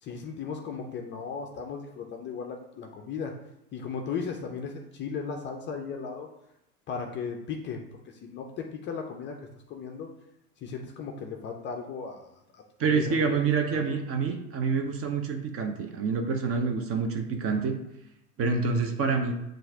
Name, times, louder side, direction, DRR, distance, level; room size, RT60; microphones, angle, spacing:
voice 1, 0.0-3.3 3.7-6.3 6.9-7.8 8.2-9.4 9.7-10.1 10.6-12.3 12.5-12.6 12.9-13.2 13.7-13.9, left 5 dB, 25° left, 2 dB, 0.4 m, -36 dB
voice 2, 12.8-17.8 18.4-19.3, right 5 dB, 30° right, 5 dB, 0.7 m, -27 dB
7.5 x 2.5 x 2.8 m, 0.86 s
hypercardioid pair, 85°, 46 cm